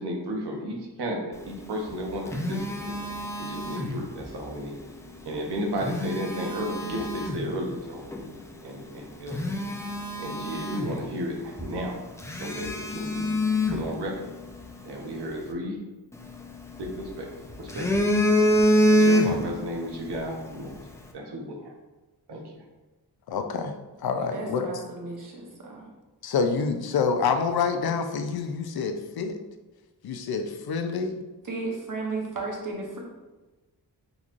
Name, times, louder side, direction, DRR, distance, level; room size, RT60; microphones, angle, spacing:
voice 1, 0.0-2.9 3.4-4.8 5.2-8.1 8.6-9.5 10.2-12.0 12.4-13.4 13.7-14.3 14.8-15.9 16.8-17.3 17.6-18.1 18.7-20.8 21.1-21.7 22.3-22.6, equal, 75° right, 1 dB, 0.8 m, -33 dB
Telephone, 1.8-4.3 5.6-7.5 8.1-8.3 8.8-8.9 9.3-11.3 11.6-11.7 12.2-14.6 16.1-17.1 17.5-19.6 19.9-20.2, left 1 dB, 10° left, 0.4 m, -25 dB
voice 2, 23.3-23.7 24.0-24.7 26.2-29.4 30.0-31.2, left 5 dB, 65° left, 7 dB, 0.5 m, -27 dB
voice 3, 24.2-25.9 31.4-33.0, right 3 dB, 50° right, -1 dB, 1.0 m, -34 dB
3.9 x 2.9 x 2.5 m, 1.2 s
cardioid pair, 65°, 40 cm